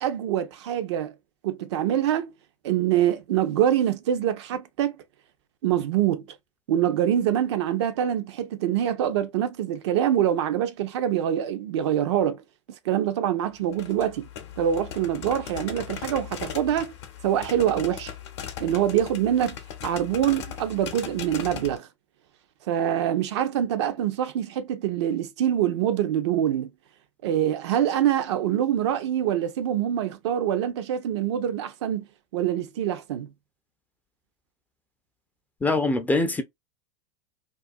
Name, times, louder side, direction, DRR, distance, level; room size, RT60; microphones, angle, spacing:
voice 1, 0.0-1.1 1.4-2.3 2.6-4.9 5.6-6.3 6.7-12.4 12.8-14.3 14.6-16.9 17.2-18.1 18.6-19.6 19.8-21.9 22.7-26.7 27.2-32.1 32.3-33.3, right 10 dB, 65° right, 0.5 m, -25 dB
sound 1, 13.6-21.8, left 9 dB, 60° left, 0.7 m, -38 dB
voice 2, 35.6-36.4, left 2 dB, 10° left, 0.4 m, -23 dB
2.4 x 2.2 x 2.4 m
hypercardioid pair, 95°, 16 cm